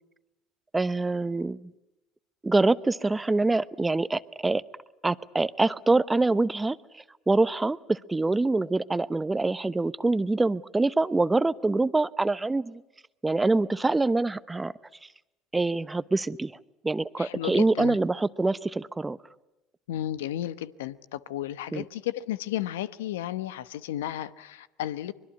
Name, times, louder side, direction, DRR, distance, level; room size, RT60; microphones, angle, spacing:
voice 1, 0.7-1.7 2.4-4.6 5.0-12.8 13.2-14.7 15.5-16.6 16.8-19.2 21.7-21.8, right 2 dB, 15° right, 0.9 m, -25 dB
voice 2, 17.2-18.0 19.9-25.1, left 12 dB, 90° left, 0.9 m, -33 dB
24.5 x 22.0 x 9.9 m
hypercardioid pair, 80°, 0 cm